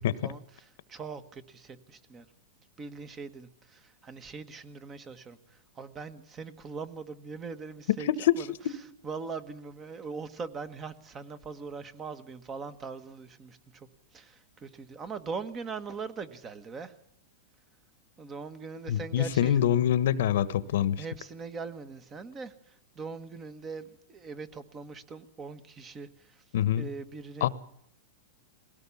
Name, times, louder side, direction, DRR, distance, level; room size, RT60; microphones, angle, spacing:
voice 1, 0.0-2.3 2.8-8.4 9.0-16.9 18.2-19.6 20.8-26.4 26.8-27.5, right 4 dB, 20° right, 13 dB, 1.4 m, -41 dB
voice 2, 8.1-8.4 8.6-8.8 18.9-21.0 26.5-26.9 27.4-27.5, left 10 dB, 70° left, 17 dB, 1.2 m, -25 dB
21.0 x 17.5 x 7.2 m, 0.70 s
supercardioid pair, 155°, 0 cm